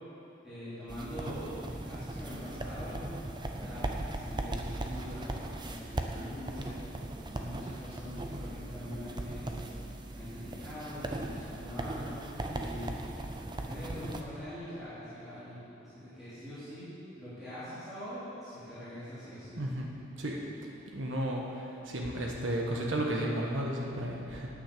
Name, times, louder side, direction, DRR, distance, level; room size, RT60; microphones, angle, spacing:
voice 1, 0.4-3.0 3.5-7.0 7.4-9.5 10.1-12.9 13.6-19.6, equal, ahead, -16 dB, 3.0 m, -43 dB
sound 1, 0.9-14.2, right 1 dB, 20° right, 0.6 m, -38 dB
voice 2, 20.9-21.4 21.9-24.5, right 1 dB, 65° right, -1 dB, 1.3 m, -33 dB
9.8 x 8.6 x 6.7 m, 2.8 s
head